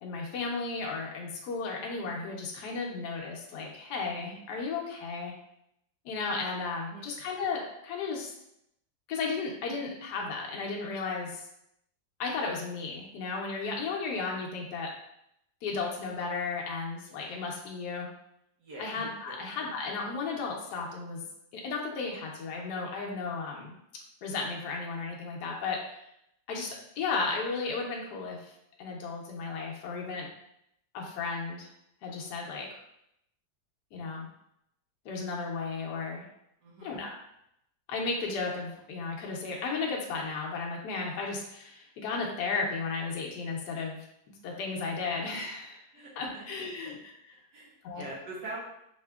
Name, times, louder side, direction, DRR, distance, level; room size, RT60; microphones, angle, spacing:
voice 1, 0.0-5.3 6.0-8.3 9.1-11.4 12.2-14.9 15.6-18.1 18.8-21.2 21.5-23.7 24.2-26.0 26.5-28.5 28.8-30.3 30.9-31.7 32.0-32.8 33.9-34.3 35.0-36.2 36.8-37.1 37.9-44.0 44.4-45.8 46.2-47.1 47.8-48.1, left 4 dB, 70° left, -1 dB, 1.1 m, -34 dB
voice 2, 36.6-37.0 45.9-46.4 47.5-48.6, right 2 dB, 70° right, -4 dB, 1.5 m, -43 dB
4.9 x 2.8 x 2.3 m, 0.78 s
omnidirectional pair, 2.0 m